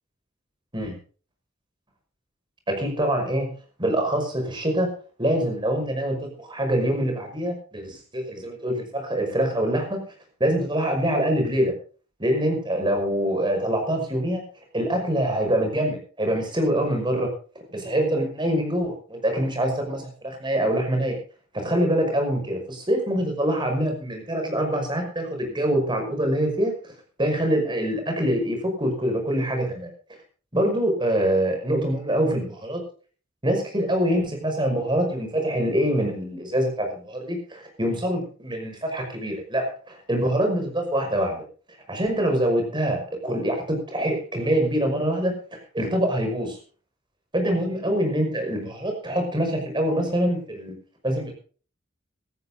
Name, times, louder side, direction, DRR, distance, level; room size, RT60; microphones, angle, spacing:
voice 1, 2.7-3.5 3.8-4.9 5.2-10.0 10.4-11.7 12.2-14.4 14.7-17.3 17.7-21.2 21.5-26.7 27.2-29.9 30.5-32.8 33.4-41.4 41.9-45.3 45.7-46.6 47.3-50.8 51.0-51.3, right 1 dB, 25° right, 3 dB, 5.7 m, -24 dB
16.5 x 13.5 x 3.9 m, 0.40 s
head